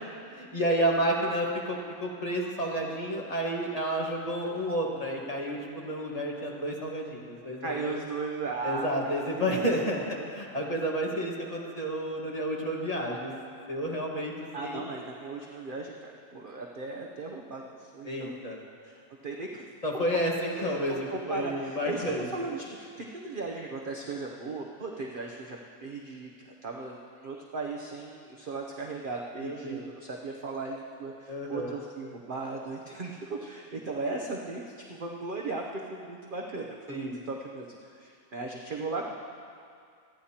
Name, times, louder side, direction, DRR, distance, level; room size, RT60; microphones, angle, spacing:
voice 1, 0.3-8.0 8.6-13.3 13.7-14.8 18.0-18.6 19.8-22.5 29.4-29.9 31.3-31.7 36.9-37.2, equal, 25° left, -2 dB, 1.5 m, -31 dB
voice 2, 7.6-10.3 14.5-18.4 18.8-19.6 19.9-20.0 20.5-22.0 22.3-27.0 27.2-39.1, right 3 dB, 40° right, 0 dB, 0.8 m, -37 dB
27.0 x 10.0 x 2.9 m, 2.4 s
omnidirectional pair, 1.7 m